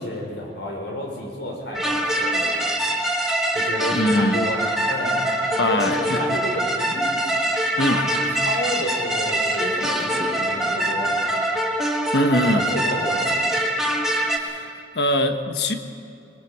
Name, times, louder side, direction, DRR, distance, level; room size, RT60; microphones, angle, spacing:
voice 1, 0.0-2.7 3.5-4.6 4.8-5.3 5.6-7.1 7.9-11.2 12.4-13.5, left 1 dB, 90° left, 0 dB, 5.0 m, -30 dB
sound 1, 1.7-14.4, right 1 dB, 5° right, 1.5 m, -24 dB
voice 2, 3.9-4.3 5.6-6.4 7.8-8.0 12.1-12.7 14.3-15.7, left 1 dB, 70° left, 7 dB, 1.3 m, -22 dB
25.0 x 21.0 x 5.0 m, 2.7 s
head